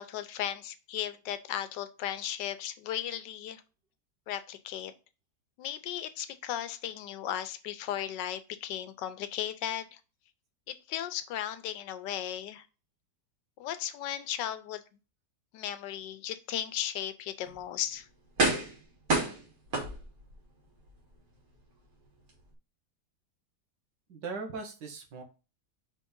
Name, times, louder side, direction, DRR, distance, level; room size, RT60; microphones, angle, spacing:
voice 1, 0.0-3.6 4.3-4.9 5.6-10.0 10.7-12.7 13.6-14.8 15.5-18.1, left 11 dB, 90° left, 12 dB, 1.3 m, -36 dB
sound 1, 17.4-17.6 18.4-18.8 19.1-20.3 20.9-21.0, right 2 dB, 55° right, 1.9 m, -28 dB
voice 2, 24.1-25.2, right 4 dB, 90° right, 3 dB, 1.8 m, -39 dB
5.0 x 3.7 x 5.3 m, 0.32 s
omnidirectional pair, 1.9 m